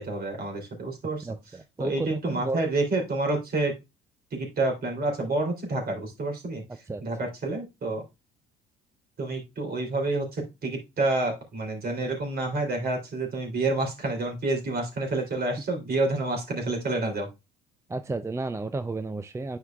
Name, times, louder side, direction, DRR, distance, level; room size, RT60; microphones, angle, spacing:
voice 1, 0.0-1.3 1.8-3.7 4.3-6.6 7.0-8.0 9.2-17.3, right 2 dB, 50° right, 3.0 m, -28 dB
voice 2, 1.2-2.6 6.9-7.0 17.9-19.6, right 3 dB, 15° right, 0.5 m, -32 dB
9.4 x 4.8 x 2.3 m
hypercardioid pair, 60°, 21 cm